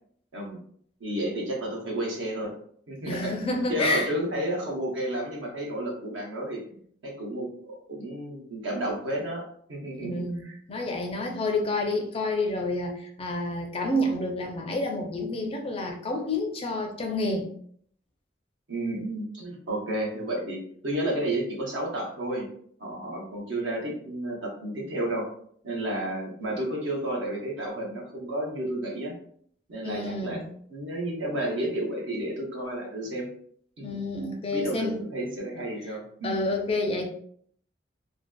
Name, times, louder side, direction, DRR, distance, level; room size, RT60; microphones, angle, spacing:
voice 1, 1.0-2.5 2.9-6.8 7.0-10.5 18.7-22.5 22.8-25.3 25.6-29.1 29.7-30.4 30.7-33.3 33.8-33.9 34.5-36.4, right 1 dB, 80° right, -1 dB, 0.8 m, -31 dB
voice 2, 3.1-4.1 10.0-10.4 10.7-17.5 29.8-30.4 33.8-35.0 36.2-37.0, left 2 dB, 30° left, 2 dB, 0.4 m, -29 dB
2.5 x 2.3 x 2.2 m, 0.62 s
head